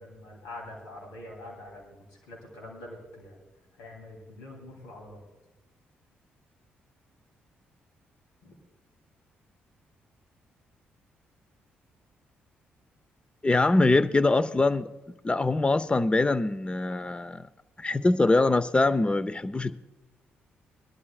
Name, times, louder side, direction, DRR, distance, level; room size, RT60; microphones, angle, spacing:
voice 1, 0.0-3.4 3.8-5.2 8.4-8.5, left 1 dB, 85° left, 0 dB, 3.1 m, -45 dB
voice 2, 13.4-14.9 15.2-17.5 17.8-19.8, left 2 dB, 20° left, 14 dB, 0.7 m, -23 dB
22.0 x 12.0 x 2.4 m, 1.0 s
hypercardioid pair, 50°, 5 cm